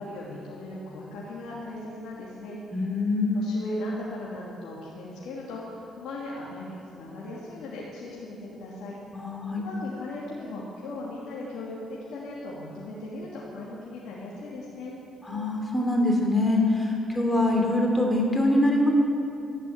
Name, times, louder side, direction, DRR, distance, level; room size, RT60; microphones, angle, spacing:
voice 1, 0.0-2.6 3.3-9.0 9.5-15.0, left 2 dB, 85° left, -6 dB, 2.8 m, -38 dB
voice 2, 2.7-3.5 9.1-9.6 15.2-18.9, left 1 dB, 15° left, 0 dB, 3.0 m, -24 dB
13.0 x 10.5 x 9.7 m, 2.7 s
cardioid pair, 90°, 0 cm